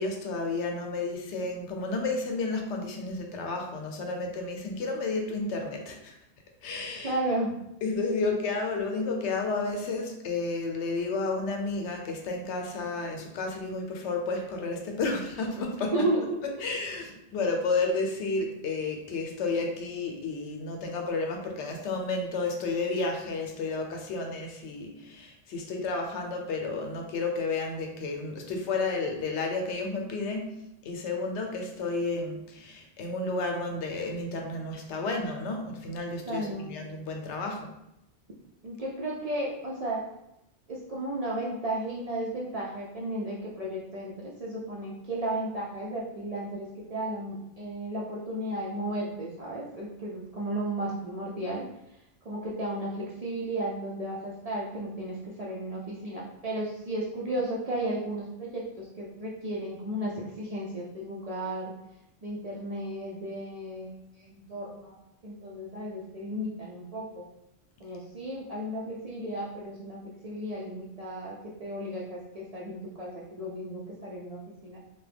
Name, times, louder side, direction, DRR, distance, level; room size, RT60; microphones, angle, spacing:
voice 1, 0.0-6.2 6.6-7.2 7.8-16.1 16.6-37.7, left 3 dB, 85° left, 3 dB, 0.9 m, -31 dB
voice 2, 7.0-7.5 15.9-16.2 36.2-36.7 38.6-40.0 40.7-51.7 52.2-61.7 62.2-65.0 65.2-67.3 67.8-74.8, right 1 dB, 50° right, -5 dB, 0.4 m, -34 dB
2.9 x 2.2 x 3.3 m, 0.84 s
omnidirectional pair, 1.1 m